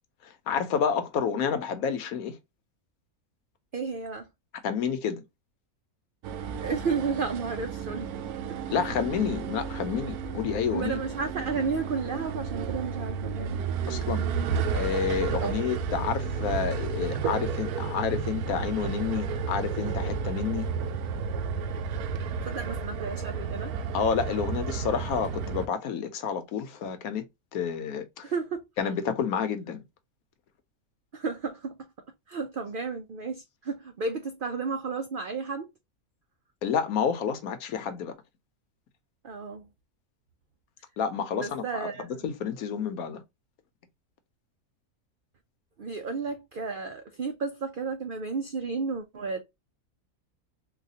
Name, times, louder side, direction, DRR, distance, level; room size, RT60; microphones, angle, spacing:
voice 1, 0.2-2.4 4.6-5.2 8.7-11.0 13.9-14.3 14.7-20.7 23.9-27.3 27.5-28.2 28.8-29.8 36.6-38.1 41.0-41.9 42.2-43.2, left 7 dB, 75° left, 1.2 m, -29 dB
voice 2, 3.7-4.3 6.6-8.1 10.7-13.6 15.4-15.6 22.4-23.7 28.2-28.6 31.1-31.9 32.3-35.7 39.2-39.7 41.4-42.2 45.8-49.4, right 4 dB, 75° right, 0.4 m, -32 dB
sound 1, 6.2-25.7, right 6 dB, 90° right, 1.1 m, -32 dB
4.0 x 2.3 x 2.6 m
omnidirectional pair, 1.5 m